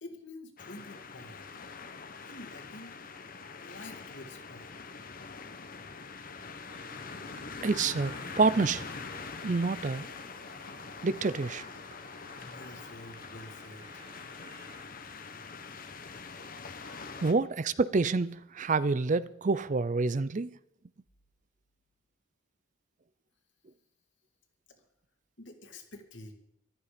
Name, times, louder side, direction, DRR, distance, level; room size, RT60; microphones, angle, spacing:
voice 1, 0.0-1.4 2.2-3.0 3.6-4.7 12.4-14.1 17.2-17.3 25.4-26.3, left 2 dB, 60° left, 2.4 m, -48 dB
sound 1, 0.6-17.3, left 4 dB, 45° left, 1.0 m, -44 dB
sound 2, 6.6-14.8, right 3 dB, 65° right, 4.0 m, -54 dB
voice 2, 7.6-8.8 9.4-10.1 11.0-11.7 17.2-20.5, right 4 dB, 40° right, 0.4 m, -28 dB
14.5 x 12.5 x 5.1 m
head